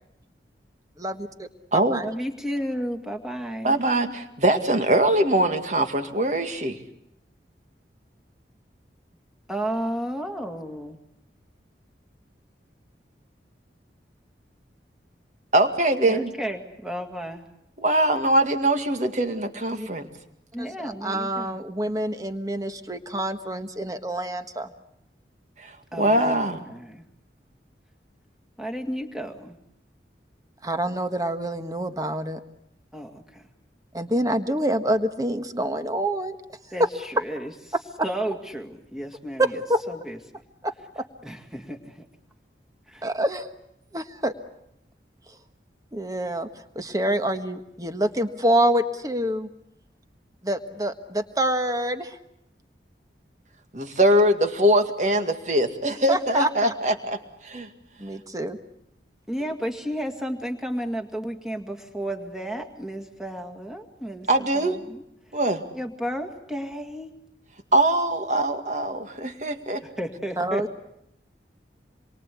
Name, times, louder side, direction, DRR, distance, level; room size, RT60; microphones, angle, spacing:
voice 1, 1.0-2.1 19.7-19.9 20.6-24.7 30.6-32.4 33.9-36.3 36.8-36.9 39.7-39.8 40.6-41.0 43.0-43.5 43.9-44.3 45.9-46.5 46.7-49.5 50.4-52.2 56.1-56.7 58.0-58.6 70.4-70.7, right 1 dB, 20° right, 8 dB, 1.4 m, -26 dB
voice 2, 2.0-3.8 9.5-11.0 16.1-17.4 20.5-21.6 25.9-27.0 28.6-29.6 32.9-33.5 36.7-37.5 38.0-39.6 39.9-40.2 41.2-42.1 42.9-43.1 59.3-64.3 64.5-65.0 65.7-67.1 69.8-70.6, equal, ahead, 3 dB, 2.1 m, -32 dB
voice 3, 3.6-6.8 15.5-16.3 17.8-20.1 25.6-25.7 26.0-26.6 53.7-57.2 57.4-57.7 64.3-64.8 65.3-65.6 67.7-69.8, right 1 dB, 40° right, 7 dB, 2.1 m, -22 dB
27.5 x 23.5 x 8.5 m, 0.79 s
head